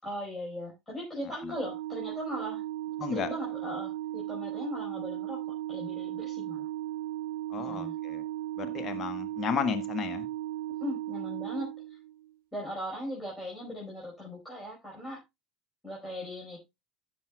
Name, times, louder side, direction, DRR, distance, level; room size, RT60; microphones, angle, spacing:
voice 1, 0.0-2.6 3.1-5.4 5.7-6.7 7.6-7.9 8.6-8.9 10.8-12.0 12.5-15.2 15.8-16.6, left 1 dB, 15° left, 4.9 m, -39 dB
Organ, 1.5-12.3, right 14 dB, 80° right, 0.4 m, -36 dB
voice 2, 3.0-3.3 7.5-8.2 8.6-10.3, left 7 dB, 45° left, 1.4 m, -33 dB
15.5 x 6.2 x 2.3 m
hypercardioid pair, 75°, 0 cm